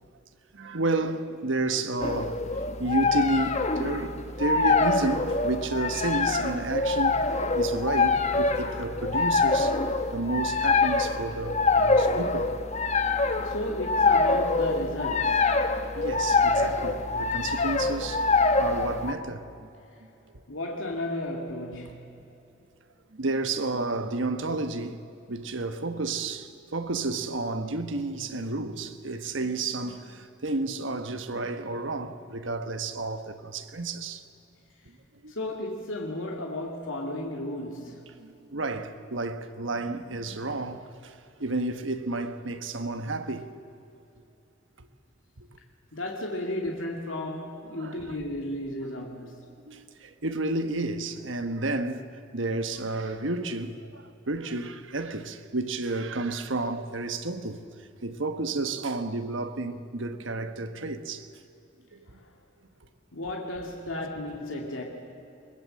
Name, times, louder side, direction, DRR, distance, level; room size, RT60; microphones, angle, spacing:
voice 1, 0.5-2.4 2.8-7.3 7.5-9.8 10.1-12.5 15.9-19.7 23.1-25.0 25.3-34.3 35.2-35.3 38.2-43.5 44.8-44.9 45.4-45.5 47.7-48.2 48.8-48.9 49.2-49.3 49.7-57.6 58.0-61.3 61.9-62.1, right 2 dB, 75° right, 1.3 m, -31 dB
sound 1, 2.0-19.1, left 3 dB, 35° left, 1.1 m, -25 dB
voice 2, 13.4-15.5 20.5-22.2 35.3-38.0 45.9-49.5 62.1-62.2 63.1-64.8, left 1 dB, 85° left, 2.4 m, -34 dB
22.5 x 20.5 x 7.7 m
head